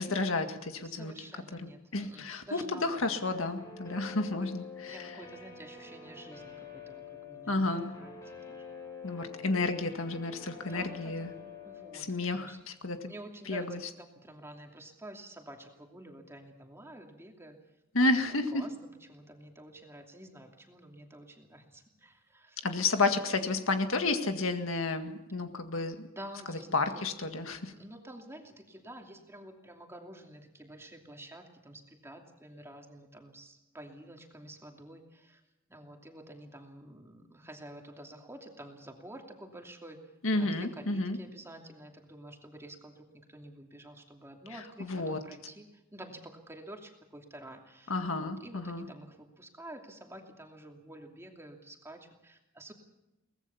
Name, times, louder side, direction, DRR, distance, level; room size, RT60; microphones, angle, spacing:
voice 1, 0.0-1.1 1.6-5.1 7.5-7.9 9.0-11.3 11.9-13.1 13.5-13.8 17.9-18.7 22.6-26.1 26.5-27.7 40.2-41.2 44.8-45.2 47.9-48.9, left 3 dB, 70° left, 6 dB, 1.9 m, -31 dB
voice 2, 0.8-3.2 4.0-4.3 4.9-8.2 8.5-8.6 10.7-11.4 11.6-12.6 13.1-13.8 14.2-17.6 18.5-18.7 19.1-22.7 26.2-27.0 27.8-35.4 35.7-40.0 40.3-47.9 48.2-52.7, right 1 dB, 15° right, 2 dB, 2.8 m, -49 dB
Guitar, 3.3-12.0, left 5 dB, 15° left, 6.7 m, -47 dB
23.0 x 19.5 x 7.1 m, 0.93 s
head